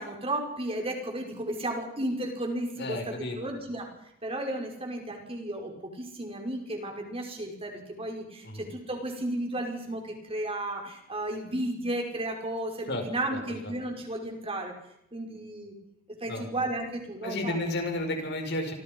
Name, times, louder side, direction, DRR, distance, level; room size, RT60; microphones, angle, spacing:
voice 1, 0.0-3.9 4.2-14.7 15.1-15.7 16.1-17.6, right 1 dB, 30° right, 2 dB, 5.7 m, -34 dB
voice 2, 2.8-3.5 8.4-8.7 12.9-13.0 13.3-13.4 16.3-16.5 17.2-18.7, left 1 dB, 60° left, 3 dB, 6.4 m, -32 dB
26.5 x 26.5 x 5.6 m, 0.77 s
head